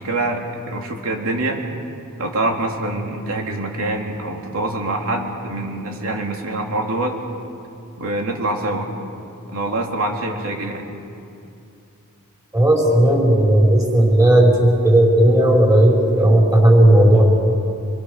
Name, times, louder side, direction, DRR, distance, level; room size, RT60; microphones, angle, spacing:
voice 1, 0.0-1.6 2.2-7.1 8.0-8.9 9.5-10.9, right 2 dB, 70° right, 1 dB, 3.3 m, -25 dB
voice 2, 12.5-17.2, right 1 dB, 15° right, -1 dB, 5.0 m, -14 dB
26.5 x 24.0 x 6.6 m, 2.6 s
head